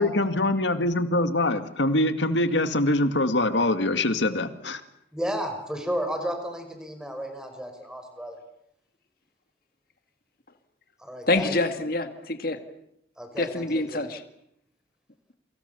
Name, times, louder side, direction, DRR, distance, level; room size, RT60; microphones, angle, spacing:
voice 1, 0.0-4.8, left 2 dB, 90° left, 2.2 m, -24 dB
voice 2, 5.1-8.4 11.0-11.5 13.2-14.1, equal, 5° right, 5.4 m, -33 dB
voice 3, 11.3-12.6 13.4-14.2, left 2 dB, 55° left, 2.1 m, -26 dB
28.0 x 25.0 x 7.0 m
head